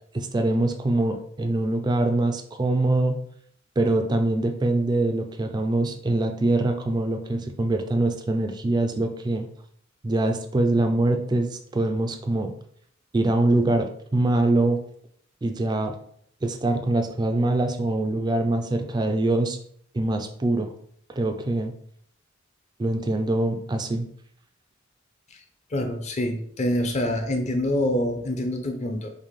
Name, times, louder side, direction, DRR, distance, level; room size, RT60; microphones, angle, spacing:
voice 1, 0.1-3.2 3.8-9.5 10.0-12.5 13.1-14.8 15.4-15.9 16.4-19.6 19.9-20.7 21.2-21.7 22.8-24.1, right 2 dB, 20° right, 5 dB, 0.3 m, -24 dB
voice 2, 25.7-29.1, left 1 dB, 35° left, 5 dB, 0.6 m, -26 dB
5.2 x 2.2 x 3.1 m, 0.63 s
head